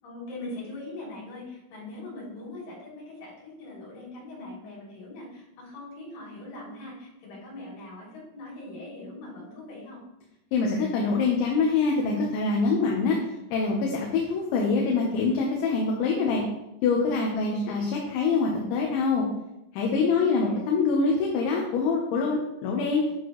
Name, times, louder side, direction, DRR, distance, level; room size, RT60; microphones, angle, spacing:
voice 1, 0.0-10.0 17.5-17.9 20.0-20.6, left 2 dB, 55° left, -6 dB, 5.0 m, -41 dB
voice 2, 10.5-13.2 13.5-16.4 16.8-19.3 19.7-23.0, left 4 dB, 75° left, -1 dB, 3.2 m, -25 dB
9.3 x 6.6 x 3.1 m, 0.88 s
omnidirectional pair, 5.6 m